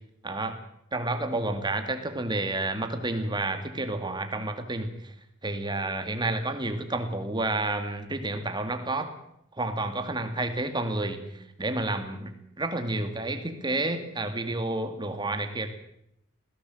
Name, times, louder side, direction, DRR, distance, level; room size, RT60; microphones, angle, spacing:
voice 1, 0.2-0.6 0.9-5.1 5.4-9.1 9.5-15.7, right 2 dB, 20° right, 7 dB, 2.2 m, -30 dB
20.5 x 16.5 x 7.8 m, 0.77 s
head